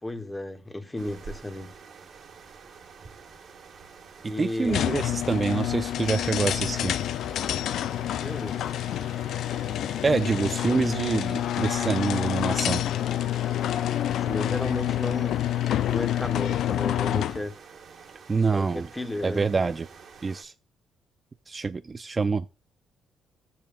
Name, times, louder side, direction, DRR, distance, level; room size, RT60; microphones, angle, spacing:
voice 1, 0.0-1.7 4.2-4.8 8.2-8.7 14.1-15.5 15.9-17.6 18.5-19.5, left 1 dB, 15° left, 1.6 m, -34 dB
sound 1, 1.0-20.4, right 5 dB, 55° right, 1.5 m, -48 dB
voice 2, 4.2-6.9 10.0-12.8 18.3-18.9 19.2-19.9 20.2-20.5 21.5-22.5, right 4 dB, 30° right, 0.4 m, -26 dB
sound 2, 4.6-17.5, left 12 dB, 75° left, 0.4 m, -28 dB
16.5 x 7.1 x 2.3 m
cardioid pair, 90°, 0 cm